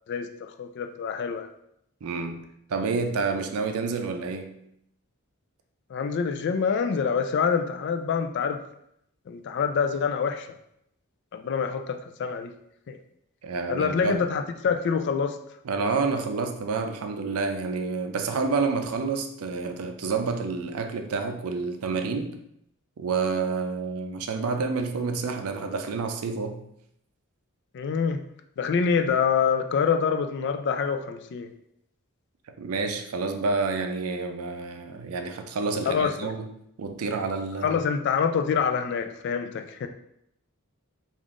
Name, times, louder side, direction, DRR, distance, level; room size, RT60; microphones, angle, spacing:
voice 1, 0.1-1.5 5.9-8.6 9.3-10.5 11.3-12.5 12.9-13.0 13.7-15.4 27.7-28.2 28.6-31.5 35.9-36.3 37.6-39.9, left 6 dB, 55° left, 7 dB, 0.3 m, -26 dB
voice 2, 2.0-4.6 13.4-14.2 15.6-22.4 23.0-26.6 32.5-36.5 36.8-37.8, right 4 dB, 90° right, 6 dB, 0.5 m, -29 dB
3.6 x 2.5 x 3.6 m, 0.75 s
head